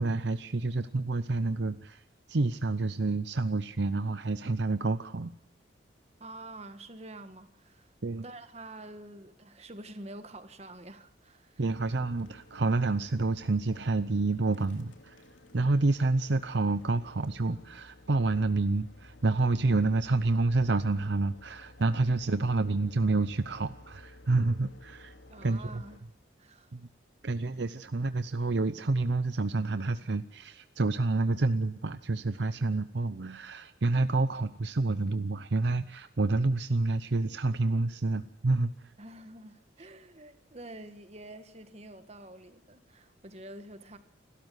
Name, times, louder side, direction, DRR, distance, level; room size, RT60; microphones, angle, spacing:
voice 1, 0.0-2.0 2.3-5.3 8.0-8.2 11.6-15.2 15.5-25.1 25.4-25.8 26.7-26.9 27.2-38.7, right 3 dB, 60° right, 0.7 m, -28 dB
voice 2, 6.2-7.9 8.2-11.7 22.0-22.4 25.3-26.1 26.4-26.7 39.0-44.0, right 1 dB, 35° right, 1.7 m, -47 dB
sound 1, 11.7-26.0, left 1 dB, 85° left, 2.7 m, -55 dB
28.0 x 13.0 x 9.4 m
head